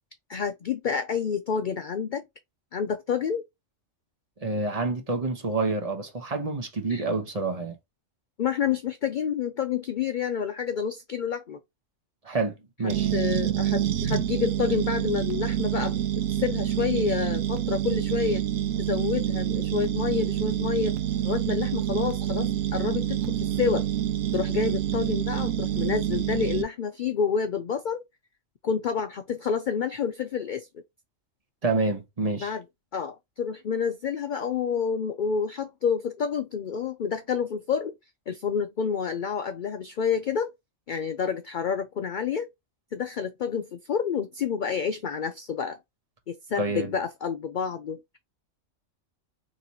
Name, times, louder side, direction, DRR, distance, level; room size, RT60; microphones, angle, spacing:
voice 1, 0.3-2.2 2.7-3.4 6.9-7.0 8.4-11.6 13.1-16.0 16.4-18.4 18.9-21.0 21.2-23.9 24.3-28.0 28.6-30.7 32.4-32.6 32.9-37.9 38.3-40.5 40.9-42.5 42.9-45.8 46.3-48.2, left 6 dB, 80° left, 0.4 m, -29 dB
voice 2, 4.4-7.8 12.2-13.1 31.6-32.5 46.6-46.9, right 3 dB, 30° right, 0.9 m, -28 dB
sound 1, 12.9-26.6, right 11 dB, 85° right, 1.1 m, -27 dB
4.0 x 3.0 x 2.8 m
omnidirectional pair, 1.4 m